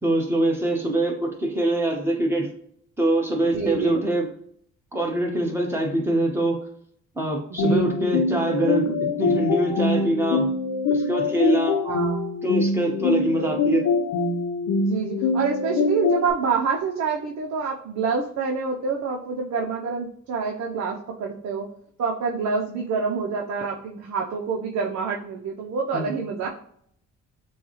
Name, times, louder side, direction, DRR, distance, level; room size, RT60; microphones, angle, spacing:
voice 1, 0.0-2.5 3.0-4.3 4.9-6.6 7.1-10.5 10.9-11.8 12.4-13.8 25.9-26.1, right 1 dB, 10° right, 0 dB, 1.4 m, -24 dB
voice 2, 3.4-4.0 7.5-7.9 11.8-12.2 14.8-21.7 22.0-26.5, right 5 dB, 65° right, 0 dB, 0.8 m, -27 dB
sound 1, 7.6-16.3, left 3 dB, 80° left, 0.8 m, -24 dB
7.0 x 2.4 x 3.1 m, 0.65 s
cardioid pair, 90°, 30 cm